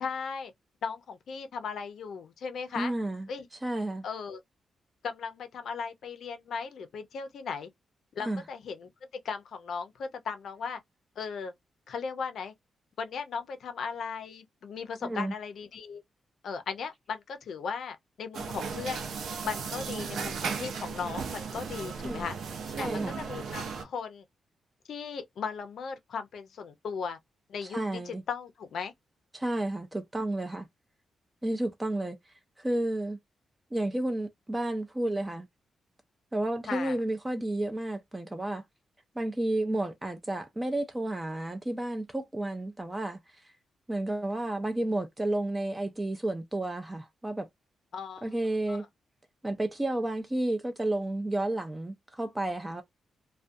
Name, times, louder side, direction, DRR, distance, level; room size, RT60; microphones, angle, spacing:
voice 1, 0.0-0.5 0.8-2.9 3.3-3.5 4.0-4.4 5.0-7.7 8.1-8.9 9.2-10.8 11.2-11.5 11.9-12.5 13.0-16.0 16.4-19.0 19.4-22.4 22.8-24.2 24.9-27.2 27.5-28.9 36.7-37.0 47.9-48.3 48.7-48.8, left 6 dB, 65° left, 0.5 m, -37 dB
voice 2, 2.8-3.3 3.6-4.0 8.2-8.4 15.0-15.3 22.0-22.2 22.8-23.2 27.6-28.2 29.3-30.7 31.4-33.2 33.7-35.5 36.3-38.6 39.2-43.4 43.9-47.5 48.2-48.8 49.4-52.8, right 1 dB, 10° right, 0.3 m, -31 dB
sound 1, 18.3-23.8, right 5 dB, 80° right, 0.6 m, -36 dB
2.4 x 2.2 x 2.5 m
wide cardioid pair, 155°, 0 cm